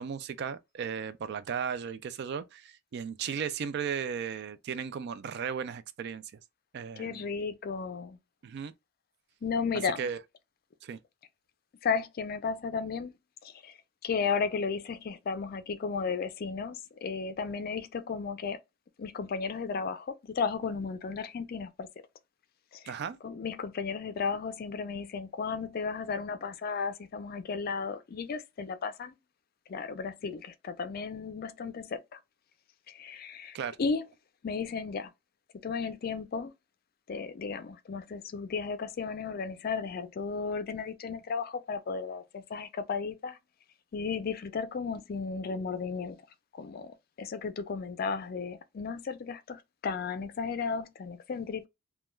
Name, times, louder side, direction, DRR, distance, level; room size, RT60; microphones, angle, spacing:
voice 1, 0.0-6.2 6.7-7.2 8.4-8.7 10.0-10.2 10.8-11.0 22.9-23.2 33.5-33.8, right 7 dB, 55° right, 0.3 m, -35 dB
voice 2, 7.0-8.2 9.4-10.1 11.8-13.1 13.4-13.7 14.0-18.6 19.0-21.9 22.7-22.9 23.2-29.1 29.7-32.2 32.9-34.0 34.4-35.1 35.6-36.5 37.1-43.4 43.9-46.2 46.5-51.7, left 5 dB, 50° left, 0.4 m, -34 dB
3.1 x 2.2 x 2.2 m
head